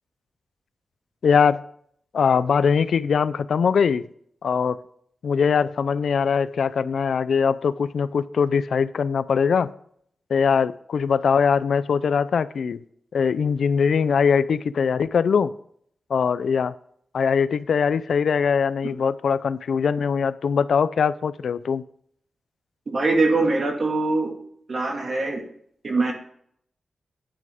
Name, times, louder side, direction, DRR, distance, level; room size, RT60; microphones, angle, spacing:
voice 1, 1.2-1.6 2.1-4.1 4.4-4.8 5.2-9.7 10.3-12.8 13.1-15.5 16.1-16.7 17.1-21.8, left 6 dB, 75° left, 15 dB, 0.4 m, -21 dB
voice 2, 22.9-24.3 24.7-25.4 25.8-26.1, right 3 dB, 45° right, 2 dB, 2.1 m, -22 dB
9.9 x 9.7 x 3.6 m, 0.65 s
wide cardioid pair, 175°, 0 cm